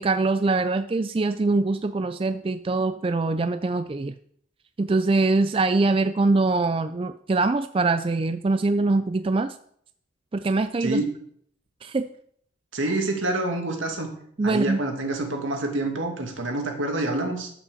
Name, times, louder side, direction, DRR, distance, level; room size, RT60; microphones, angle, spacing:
voice 1, 0.0-4.1 4.8-9.5 10.3-11.0 11.8-12.1 14.4-14.8, right 3 dB, 25° right, 10 dB, 0.3 m, -23 dB
voice 2, 12.7-14.1 14.4-17.5, right 2 dB, 75° right, 3 dB, 2.5 m, -27 dB
13.0 x 6.0 x 7.0 m, 0.66 s
head